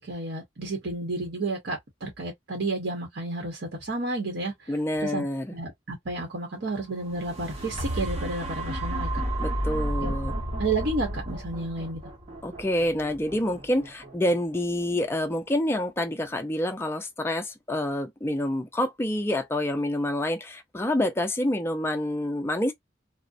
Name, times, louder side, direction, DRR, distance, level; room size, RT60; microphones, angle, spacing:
voice 1, 0.0-4.5 5.0-5.2 5.5-9.2 10.0-10.1 10.6-12.0, right 2 dB, 55° right, 0.9 m, -31 dB
voice 2, 4.7-5.6 9.4-10.4 12.4-22.7, left 1 dB, 10° left, 0.4 m, -27 dB
sound 1, 7.0-15.0 15.6-15.7, right 1 dB, 30° right, 0.9 m, -32 dB
2.4 x 2.1 x 2.4 m
head